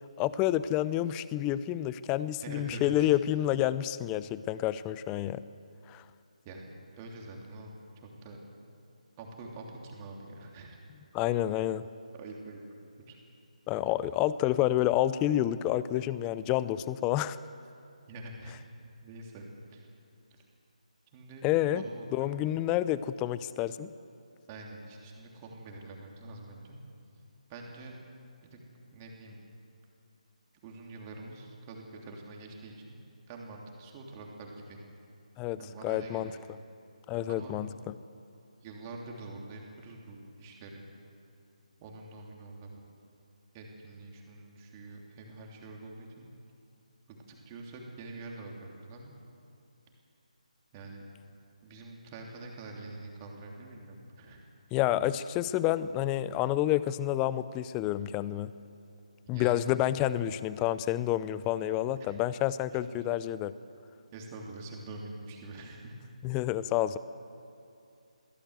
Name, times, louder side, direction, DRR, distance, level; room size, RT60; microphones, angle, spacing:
voice 1, 0.2-5.4 5.9-6.0 11.1-11.9 13.7-17.4 21.4-21.8 22.1-23.9 35.4-36.3 37.1-37.9 54.7-58.5 59.3-63.5 66.2-67.0, left 13 dB, 15° left, 16 dB, 0.4 m, -29 dB
voice 2, 2.4-3.1 6.4-6.6 6.9-7.7 8.0-8.4 9.2-10.8 12.1-12.6 13.1-13.2 18.1-18.6 19.0-19.4 19.7-19.8 21.1-21.4 21.7-22.3 24.5-26.8 27.5-27.9 28.4-28.6 28.9-29.4 30.6-32.9 33.3-34.8 35.6-36.3 37.3-37.6 38.6-40.8 41.8-42.8 43.5-46.3 47.1-49.2 50.7-51.0 51.6-54.4 59.3-59.7 62.0-62.2 62.9-63.0 64.1-65.9, right 2 dB, 20° right, 0 dB, 3.0 m, -45 dB
23.5 x 16.5 x 8.0 m, 2.6 s
figure-of-eight pair, 160°, 4 cm